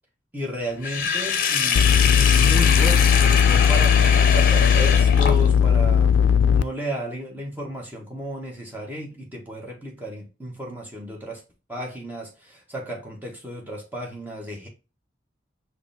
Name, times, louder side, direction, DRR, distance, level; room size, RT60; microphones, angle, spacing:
voice 1, 0.3-4.0 4.3-11.4 11.7-14.7, equal, 10° right, 1.4 m, -33 dB
Sink (filling or washing), 0.8-5.7, left 6 dB, 50° left, 0.7 m, -23 dB
sound 1, 1.8-6.6, left 7 dB, 80° left, 0.3 m, -17 dB
4.9 x 3.0 x 3.4 m
head